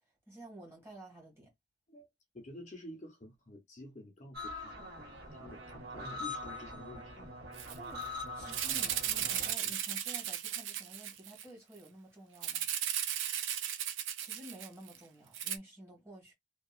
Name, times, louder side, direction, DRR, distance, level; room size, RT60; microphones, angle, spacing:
voice 1, 0.3-1.5 7.7-8.0 8.3-12.7 14.2-16.3, right 1 dB, 15° right, 1.3 m, -51 dB
voice 2, 2.3-4.9 5.3-7.3, left 1 dB, 35° left, 0.7 m, -50 dB
sound 1, 4.3-9.5, left 2 dB, 55° right, 1.5 m, -43 dB
Rattle (instrument), 7.6-7.7 8.0-8.1 8.5-11.4 12.4-15.0 15.3-15.6, right 10 dB, 75° right, 0.5 m, -35 dB
2.7 x 2.3 x 2.3 m
head